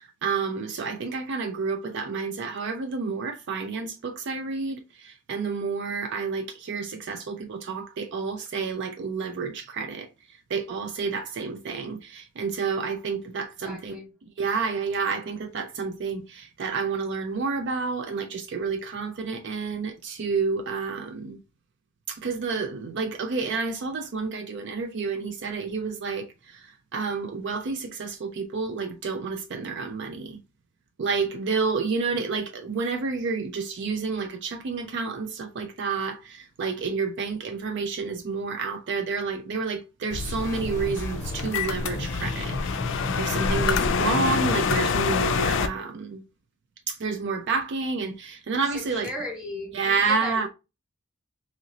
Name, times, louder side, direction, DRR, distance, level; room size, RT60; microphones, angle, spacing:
voice 1, 0.0-10.1 10.5-21.4 22.1-30.4 31.0-42.6 42.9-46.2 46.9-49.1 49.7-50.5, right 4 dB, 60° right, 0.5 m, -30 dB
voice 2, 13.6-14.1 48.7-50.5, left 1 dB, 5° right, 1.4 m, -36 dB
sound 1, 40.1-45.7, left 5 dB, 65° left, 0.4 m, -26 dB
sound 2, 40.4-44.8, left 1 dB, 15° left, 0.7 m, -36 dB
3.0 x 2.9 x 3.7 m
head